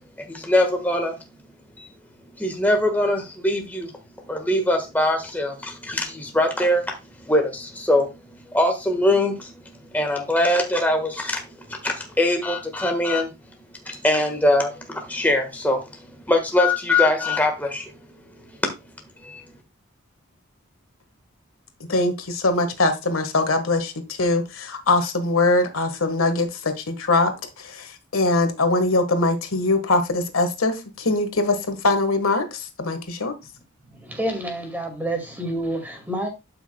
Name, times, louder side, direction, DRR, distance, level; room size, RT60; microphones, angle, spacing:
voice 1, 0.3-1.2 1.8-1.9 2.4-3.9 4.3-6.9 7.3-8.1 8.5-9.5 9.9-13.3 13.8-15.8 16.3-17.8 19.2-19.4, left 1 dB, 10° left, 1.4 m, -22 dB
voice 2, 21.9-27.3 27.6-33.3, left 2 dB, 90° left, 1.5 m, -22 dB
voice 3, 33.9-36.3, right 1 dB, 10° right, 2.0 m, -28 dB
12.0 x 5.8 x 2.2 m
head